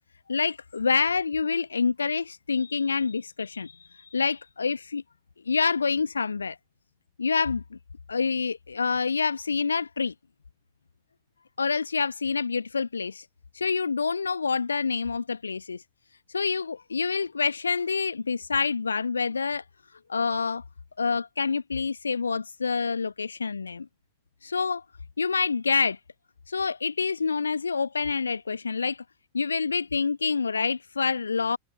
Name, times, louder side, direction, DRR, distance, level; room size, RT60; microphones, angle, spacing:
voice 1, 0.3-3.7 4.1-5.0 5.5-6.6 7.2-7.6 8.1-10.1 11.6-13.2 13.5-15.8 16.3-19.6 20.1-20.6 21.0-23.8 24.4-24.8 25.2-26.0 26.5-29.0 29.3-31.6, left 5 dB, 75° left, 1.1 m, -27 dB
figure-of-eight pair, 90°, 0 cm